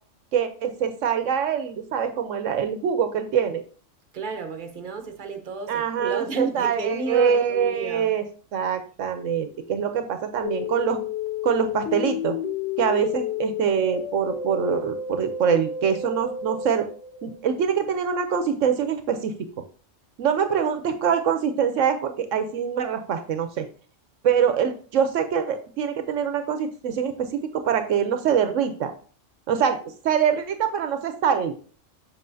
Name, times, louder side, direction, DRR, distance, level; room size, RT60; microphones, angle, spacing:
voice 1, 0.3-3.6 5.7-8.2 8.5-11.0 11.4-12.4 12.8-16.9 17.2-19.3 20.2-23.7 24.2-27.3 27.5-28.9 29.5-29.8 30.0-31.5, right 7 dB, 80° right, 1.0 m, -24 dB
voice 2, 4.1-8.1, right 4 dB, 45° right, 1.0 m, -32 dB
sound 1, 10.4-17.5 17.8-17.9, left 7 dB, 60° left, 1.1 m, -31 dB
7.4 x 5.3 x 2.7 m
omnidirectional pair, 1.3 m